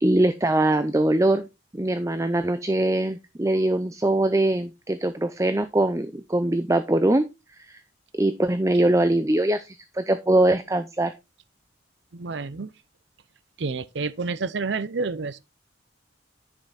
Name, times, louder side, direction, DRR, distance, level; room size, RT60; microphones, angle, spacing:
voice 1, 0.0-1.5 1.7-7.2 7.6-7.8 8.2-11.1, right 1 dB, 15° right, 0.5 m, -22 dB
voice 2, 12.1-12.7 13.6-15.4, right 4 dB, 65° right, 0.6 m, -29 dB
10.0 x 5.8 x 4.1 m
head